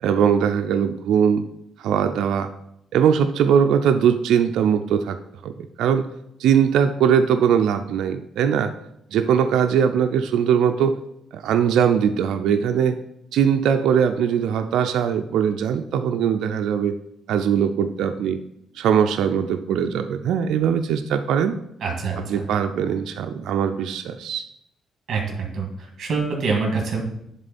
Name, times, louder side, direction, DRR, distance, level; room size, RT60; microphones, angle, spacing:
voice 1, 0.0-1.4 1.8-2.5 2.9-5.2 5.4-5.5 5.8-6.1 6.4-8.7 9.1-11.0 11.3-13.0 13.3-17.0 17.3-18.4 18.8-21.6 22.3-24.4, right 8 dB, 80° right, 7 dB, 0.4 m, -20 dB
voice 2, 21.8-22.4 25.1-25.7 26.0-27.0, right 4 dB, 55° right, 0 dB, 1.8 m, -25 dB
10.0 x 3.7 x 4.2 m, 0.78 s
cardioid pair, 90°, 0 cm